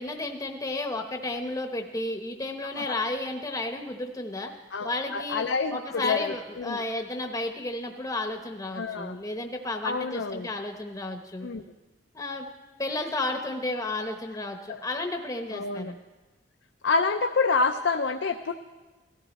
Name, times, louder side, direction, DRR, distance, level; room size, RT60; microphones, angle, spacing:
voice 1, 0.0-4.5 4.8-5.4 5.7-11.5 12.1-12.5 12.8-16.0, left 2 dB, 20° left, 4 dB, 0.8 m, -32 dB
voice 2, 4.7-6.8 8.7-9.2 9.8-10.5 11.4-11.6 14.7-14.8 15.5-15.9 16.8-18.5, left 4 dB, 80° left, 5 dB, 0.6 m, -28 dB
17.5 x 14.0 x 4.1 m, 1.2 s
head